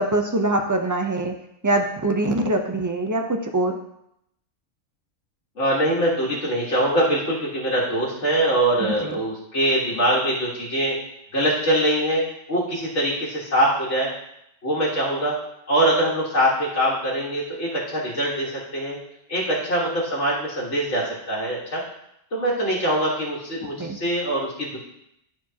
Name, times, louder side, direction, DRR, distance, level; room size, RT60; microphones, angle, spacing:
voice 1, 0.0-1.3 1.6-3.8 8.8-9.2 23.6-24.0, right 2 dB, 20° right, 4 dB, 0.5 m, -23 dB
voice 2, 5.6-10.9 11.3-14.1 14.6-15.3 15.7-19.0 19.3-21.8 22.3-24.8, right 1 dB, 65° left, -7 dB, 2.0 m, -23 dB
12.5 x 4.4 x 2.9 m, 0.79 s
omnidirectional pair, 1.3 m